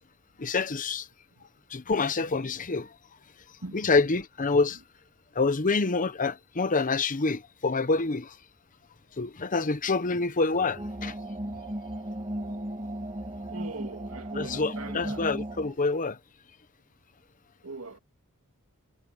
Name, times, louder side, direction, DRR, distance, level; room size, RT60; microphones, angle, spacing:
voice 1, 0.4-1.1 1.7-2.9 3.7-4.8 5.3-8.4 9.2-11.1 14.3-16.2, left 3 dB, 35° left, 0.9 m, -27 dB
sound 1, 10.5-15.8, right 1 dB, 25° right, 2.1 m, -36 dB
voice 2, 13.5-15.3 17.6-18.0, right 3 dB, 70° right, 2.2 m, -41 dB
head